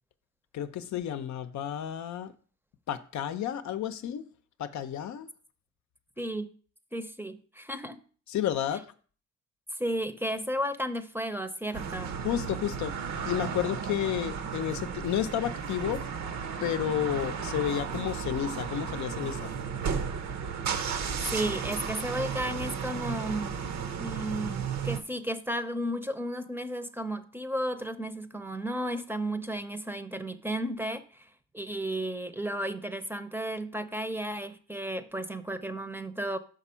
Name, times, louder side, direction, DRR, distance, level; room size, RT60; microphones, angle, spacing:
voice 1, 0.5-2.3 2.9-4.2 4.6-5.3 8.3-8.9 12.2-13.0 13.3-16.1 16.6-19.5, left 11 dB, 70° left, 0.6 m, -31 dB
voice 2, 6.2-6.5 6.9-8.0 9.7-12.1 21.3-23.5 24.0-31.3 31.5-36.4, right 1 dB, 5° right, 0.6 m, -33 dB
sound 1, 11.7-25.0, right 6 dB, 65° right, 0.8 m, -34 dB
6.0 x 5.2 x 5.6 m
cardioid pair, 90°, 30 cm